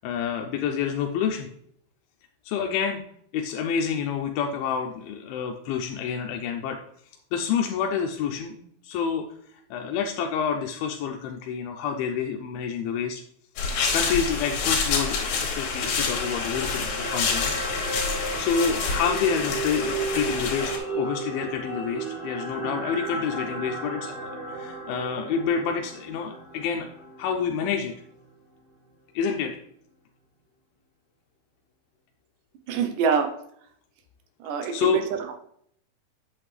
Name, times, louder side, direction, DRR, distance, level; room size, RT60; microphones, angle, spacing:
voice 1, 0.0-1.5 2.5-3.0 3.3-6.8 7.3-9.3 9.5-13.2 13.9-17.5 18.4-24.2 24.5-26.9 27.2-27.9 29.1-29.5 34.7-35.0, left 7 dB, 85° left, 3 dB, 2.5 m, -28 dB
sound 1, 13.6-20.8, left 4 dB, 70° left, 3.2 m, -27 dB
sound 2, 15.8-28.1 28.5-28.6, right 3 dB, 55° right, 4.9 m, -35 dB
voice 2, 32.7-33.3 34.4-35.3, right 6 dB, 80° right, 6 dB, 2.0 m, -25 dB
8.0 x 7.8 x 3.2 m, 0.67 s
omnidirectional pair, 4.3 m